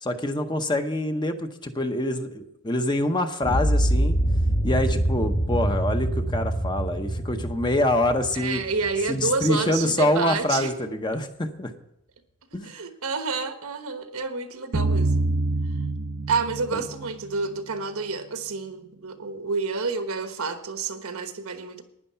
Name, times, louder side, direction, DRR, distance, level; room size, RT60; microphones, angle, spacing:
voice 1, 0.0-4.2 4.6-8.6 9.1-11.7 12.5-12.7 16.7-16.8, left 1 dB, 20° left, 7 dB, 0.7 m, -25 dB
sound 1, 3.4-9.5, right 1 dB, 35° left, 1.4 m, -25 dB
voice 2, 8.3-10.7 12.6-15.3 16.3-21.8, right 4 dB, 85° right, 8 dB, 1.2 m, -29 dB
sound 2, 14.7-17.8, right 2 dB, 50° right, 0.6 m, -27 dB
11.0 x 9.9 x 5.7 m, 0.80 s
head